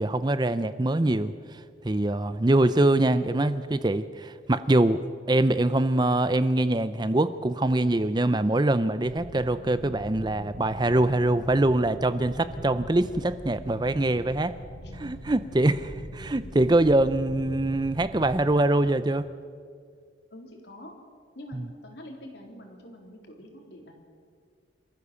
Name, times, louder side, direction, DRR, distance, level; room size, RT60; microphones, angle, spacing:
voice 1, 0.0-5.0 5.3-14.6 14.9-19.2 21.5-21.6, right 2 dB, 20° right, 13 dB, 0.5 m, -24 dB
sound 1, 9.0-18.5, equal, 90° left, 6.0 m, -42 dB
voice 2, 20.3-20.9 21.4-23.9, left 1 dB, 60° left, 1 dB, 3.9 m, -45 dB
27.5 x 14.5 x 7.0 m, 2.1 s
head